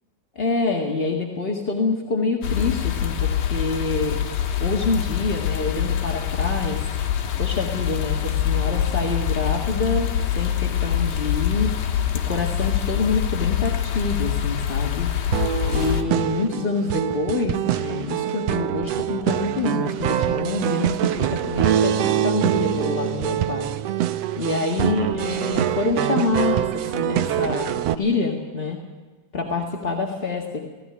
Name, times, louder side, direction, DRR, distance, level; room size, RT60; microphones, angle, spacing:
voice 1, 0.3-4.2 4.6-6.8 7.4-10.1 10.3-11.7 12.3-15.1 15.6-23.7 24.4-26.7 26.9-28.8 29.3-30.6, left 3 dB, 25° left, -1 dB, 1.3 m, -26 dB
sound 1, 2.4-16.0, left 10 dB, 60° left, 2.4 m, -25 dB
sound 2, 15.3-28.0, right 11 dB, 75° right, 1.5 m, -24 dB
18.0 x 16.5 x 9.9 m, 1.3 s
omnidirectional pair, 3.7 m